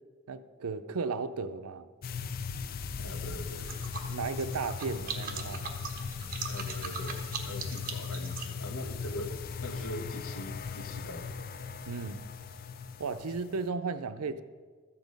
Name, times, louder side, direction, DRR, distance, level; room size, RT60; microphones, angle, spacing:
voice 1, 0.3-1.9 4.1-5.6 11.9-12.3 13.0-14.4, right 4 dB, 90° right, 11 dB, 0.5 m, -35 dB
sound 1, 2.0-13.7, left 5 dB, 40° left, 0.4 m, -38 dB
voice 2, 3.0-3.8 6.5-11.4, left 1 dB, 75° left, 6 dB, 1.2 m, -42 dB
sound 2, 3.1-9.2, right 5 dB, 40° right, 1.2 m, -41 dB
13.0 x 8.3 x 5.3 m, 1.5 s
head